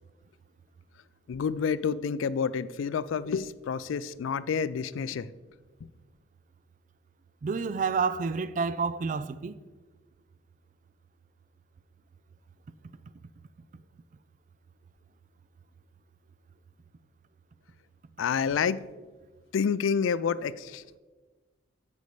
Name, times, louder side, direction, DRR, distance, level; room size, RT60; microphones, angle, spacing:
voice 1, 1.3-5.3 18.2-18.9 19.5-21.0, left 6 dB, 85° left, 0.3 m, -29 dB
voice 2, 7.4-9.6, right 5 dB, 40° right, 0.3 m, -29 dB
15.0 x 5.4 x 3.2 m
head